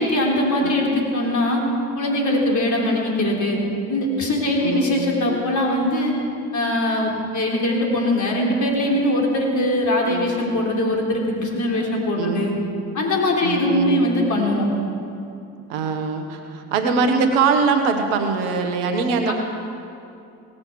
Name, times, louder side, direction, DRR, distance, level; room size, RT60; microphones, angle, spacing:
voice 1, 0.0-1.6 2.0-3.6 3.9-6.2 6.5-12.5 12.9-14.7 19.3-19.4, left 1 dB, 45° left, -1 dB, 3.7 m, -21 dB
voice 2, 4.6-5.1 10.1-10.3 12.2-12.5 13.4-14.0 15.7-19.3, right 5 dB, 80° right, 5 dB, 1.3 m, -22 dB
18.0 x 7.0 x 7.0 m, 2.6 s
hypercardioid pair, 55°, 39 cm